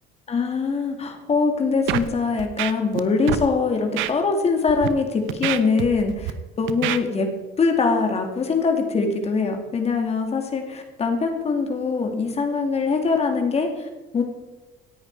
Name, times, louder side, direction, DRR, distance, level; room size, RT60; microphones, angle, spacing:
voice 1, 0.3-7.3 7.6-14.2, left 4 dB, 30° left, 4 dB, 2.7 m, -23 dB
Scratching (performance technique), 1.9-2.1 2.4-3.0 3.3-3.4 4.0-4.1 4.7-4.9 5.3-6.3 6.7-7.0, right 13 dB, 75° right, 1.0 m, -26 dB
17.5 x 10.5 x 4.9 m, 1.1 s
cardioid pair, 120°, 20 cm